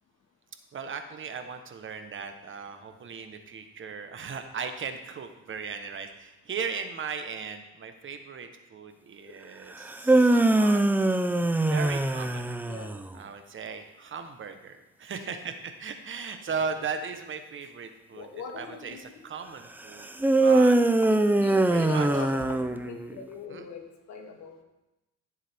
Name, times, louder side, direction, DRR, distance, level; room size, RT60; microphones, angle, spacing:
voice 1, 0.7-10.8 11.7-12.5 13.1-20.1 20.4-20.8 21.7-22.2 23.5-23.7, right 5 dB, 45° right, 7 dB, 1.2 m, -37 dB
sound 1, 9.8-13.0 20.2-23.1, right 2 dB, 5° right, 0.5 m, -22 dB
voice 2, 18.1-19.0 21.1-24.6, left 6 dB, 70° left, 2 dB, 1.9 m, -40 dB
14.5 x 7.4 x 3.6 m, 0.97 s
cardioid pair, 105°, 29 cm